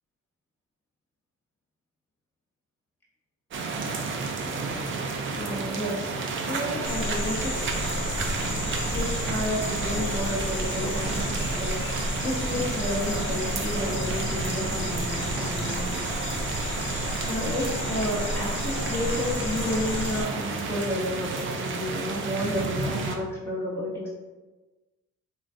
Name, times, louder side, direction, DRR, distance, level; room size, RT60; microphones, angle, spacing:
sound 1, 3.5-23.2, right 4 dB, 40° right, 0.4 m, -31 dB
voice 1, 5.3-7.5 8.9-16.0 17.2-24.1, left 1 dB, 10° left, -6 dB, 0.8 m, -31 dB
sound 2, 6.8-20.2, left 1 dB, 40° left, 0.6 m, -32 dB
3.1 x 2.4 x 2.5 m, 1.2 s
cardioid pair, 90°, 30 cm